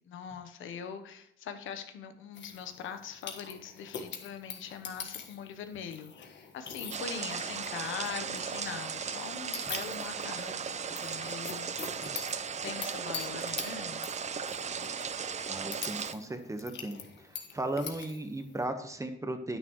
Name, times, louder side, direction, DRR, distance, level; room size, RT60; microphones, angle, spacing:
voice 1, 0.1-11.9 12.6-14.0, left 7 dB, 80° left, 8 dB, 1.0 m, -42 dB
sound 1, 2.3-18.6, left 6 dB, 65° left, 1.5 m, -45 dB
sound 2, 6.9-16.1, right 6 dB, 35° right, 0.6 m, -36 dB
voice 2, 15.5-19.6, right 1 dB, 15° right, 7 dB, 1.2 m, -36 dB
9.7 x 8.9 x 3.1 m, 0.72 s
cardioid pair, 90°, 20 cm